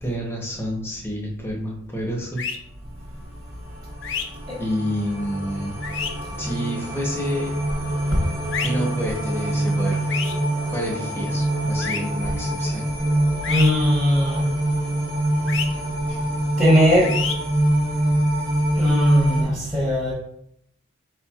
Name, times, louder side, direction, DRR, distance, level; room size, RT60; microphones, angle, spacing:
voice 1, 0.0-2.4 4.6-5.8 6.4-7.5 8.6-10.0 10.6-12.9, equal, 10° left, -1 dB, 0.8 m, -29 dB
sound 1, 2.4-2.6 4.0-4.2 5.8-6.1 8.5-8.7 10.1-10.3 11.8-12.0 13.4-13.7 15.5-15.7 17.0-17.3, left 6 dB, 65° left, 0.5 m, -27 dB
sound 2, 3.2-19.4, right 1 dB, 45° right, 1.3 m, -25 dB
voice 2, 13.5-14.5 16.6-17.1 18.8-20.1, equal, 15° right, -8 dB, 1.0 m, -19 dB
4.8 x 4.3 x 2.3 m, 0.72 s
head